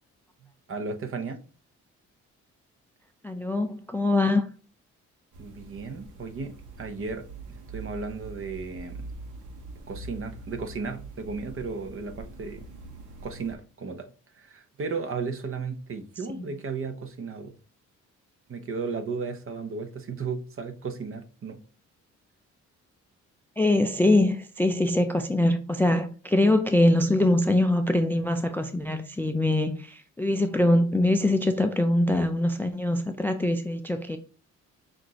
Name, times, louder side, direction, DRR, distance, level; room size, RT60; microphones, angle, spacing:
voice 1, 0.7-1.4 5.4-9.1 9.9-12.7 13.2-14.1 14.3-17.6 18.5-21.6, right 4 dB, 45° right, 0.8 m, -35 dB
voice 2, 3.2-4.5 16.3-16.4 23.6-34.2, left 1 dB, 5° left, 0.3 m, -23 dB
sound 1, 5.3-13.6, right 3 dB, 80° right, 1.0 m, -43 dB
5.8 x 2.6 x 2.8 m
cardioid pair, 90°, 30 cm